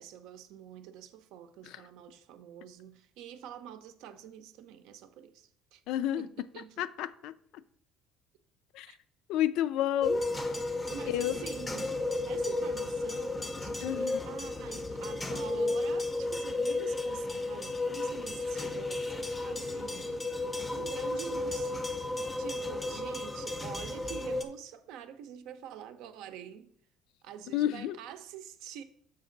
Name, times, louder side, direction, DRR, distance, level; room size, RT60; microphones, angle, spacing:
voice 1, 0.0-5.8 6.2-6.8 8.9-9.0 10.9-20.3 20.7-26.7 27.2-28.8, right 9 dB, 70° right, 0.6 m, -46 dB
voice 2, 5.9-6.3 6.8-7.3 8.7-8.9 9.3-10.2 11.1-11.3 13.8-14.2 27.5-28.0, left 12 dB, 65° left, 0.3 m, -30 dB
sound 1, 10.0-24.4, left 2 dB, 10° left, 0.5 m, -33 dB
7.0 x 5.2 x 3.8 m
cardioid pair, 160°, 0 cm